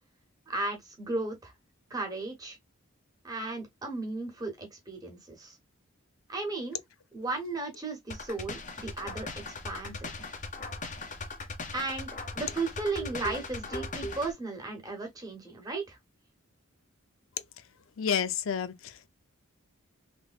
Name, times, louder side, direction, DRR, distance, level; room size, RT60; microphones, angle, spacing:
voice 1, 0.5-1.5 1.9-2.6 3.2-5.6 6.3-6.8 7.1-10.1 11.7-12.1 12.3-16.0, right 3 dB, 15° right, 1.2 m, -35 dB
sound 1, 8.1-14.3, left 2 dB, 35° left, 0.7 m, -38 dB
voice 2, 18.0-19.1, left 7 dB, 65° left, 0.5 m, -30 dB
3.4 x 3.0 x 2.3 m
head